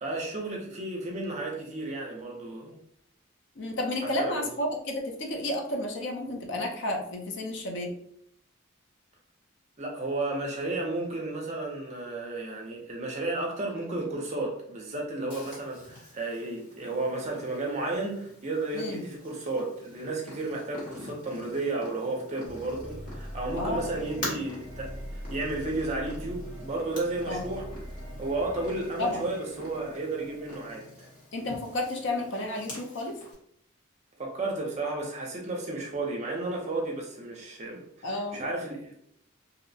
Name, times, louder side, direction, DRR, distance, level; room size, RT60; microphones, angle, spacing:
voice 1, 0.0-2.7 4.0-4.5 9.8-27.7 28.2-31.1 34.2-38.9, right 2 dB, 30° right, 0.5 m, -33 dB
voice 2, 3.6-7.9 18.7-19.0 23.6-23.8 24.2-24.4 27.3-27.4 29.0-29.2 31.3-33.1 38.0-38.5, left 1 dB, 55° left, 0.5 m, -31 dB
Purr, 15.3-33.3, left 1 dB, 40° left, 0.8 m, -46 dB
sound 1, 22.5-31.5, equal, 5° right, 1.0 m, -43 dB
2.6 x 2.0 x 2.6 m
head